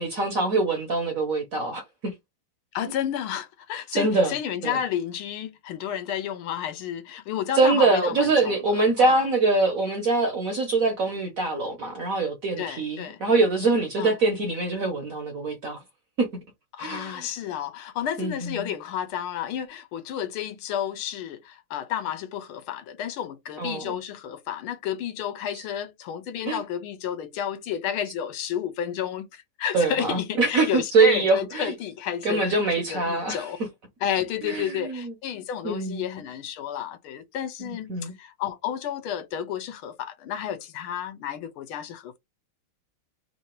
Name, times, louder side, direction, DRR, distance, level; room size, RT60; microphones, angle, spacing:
voice 1, 0.0-2.1 3.9-4.3 4.6-4.8 7.5-15.8 16.2-16.3 16.8-17.3 18.2-18.7 23.6-24.0 25.5-25.6 26.4-26.6 29.7-31.7 32.2-33.4 34.4-35.1 35.6-36.0 37.6-38.1, right 3 dB, 55° right, 1.0 m, -24 dB
voice 2, 2.7-9.2 12.6-13.2 14.0-14.1 16.7-33.6 34.0-42.2, left 9 dB, 80° left, 1.6 m, -31 dB
3.9 x 2.7 x 4.4 m
omnidirectional pair, 2.4 m